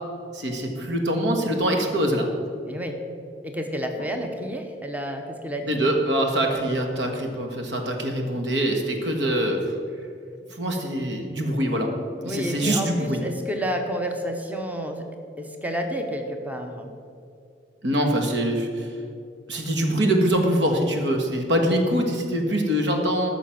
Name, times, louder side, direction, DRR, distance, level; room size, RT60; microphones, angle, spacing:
voice 1, 0.3-2.3 5.7-9.6 10.6-11.9 12.2-13.2 17.8-18.9 19.5-23.3, right 1 dB, 90° right, 3 dB, 1.6 m, -24 dB
voice 2, 2.6-3.0 3.4-5.9 12.2-15.1 15.4-16.9, equal, 10° right, 4 dB, 0.9 m, -30 dB
14.0 x 6.2 x 5.9 m, 2.4 s
head